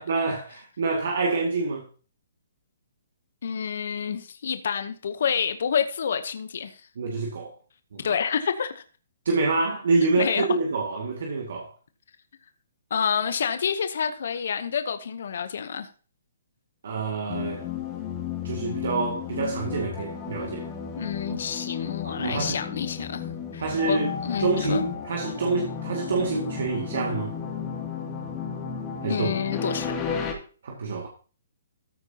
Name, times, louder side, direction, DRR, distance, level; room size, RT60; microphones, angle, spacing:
voice 1, 0.0-1.8 7.0-7.5 7.9-8.2 9.3-11.7 16.8-17.6 18.4-20.7 22.0-22.6 23.6-24.1 24.4-27.3 29.0-29.3 30.6-31.1, right 3 dB, 65° right, 2.1 m, -27 dB
voice 2, 3.4-6.9 8.0-8.8 10.0-10.6 12.9-15.9 21.0-23.3 23.5-24.8 29.1-29.9, left 7 dB, 65° left, 0.9 m, -28 dB
sound 1, 17.3-30.3, left 7 dB, 20° left, 2.4 m, -33 dB
14.0 x 8.4 x 2.9 m
hypercardioid pair, 150°, 0 cm